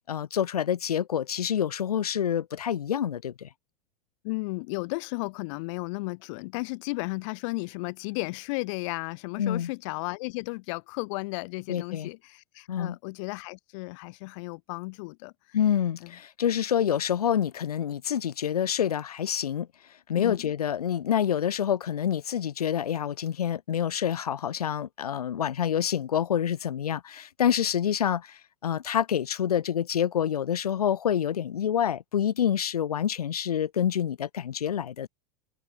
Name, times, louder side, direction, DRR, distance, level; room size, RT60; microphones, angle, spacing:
voice 1, 0.1-3.5 9.4-9.7 11.7-12.1 12.7-13.0 15.5-19.7 20.1-35.1, left 9 dB, 75° left, 1.3 m, -27 dB
voice 2, 4.2-15.6 16.0-16.1 20.1-20.5, left 27 dB, 55° left, 1.0 m, -34 dB
figure-of-eight pair, 85°, 19 cm